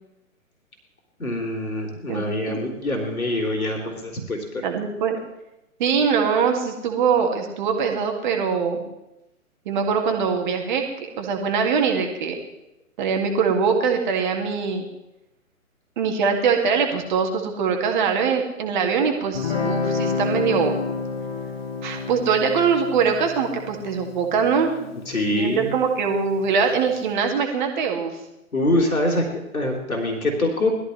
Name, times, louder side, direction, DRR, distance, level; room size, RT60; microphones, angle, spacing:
voice 1, 1.2-4.6 25.1-25.7 28.5-30.7, left 1 dB, 75° left, 1 dB, 3.3 m, -24 dB
voice 2, 2.1-2.6 4.6-5.2 5.8-8.8 9.7-12.4 13.0-14.9 16.0-20.7 21.8-25.0 25.3-28.1, right 6 dB, 35° right, 3 dB, 2.1 m, -22 dB
Guitar, 19.3-26.5, left 4 dB, 45° left, 2.1 m, -30 dB
19.5 x 13.5 x 3.3 m, 0.89 s
figure-of-eight pair, 125°, 43 cm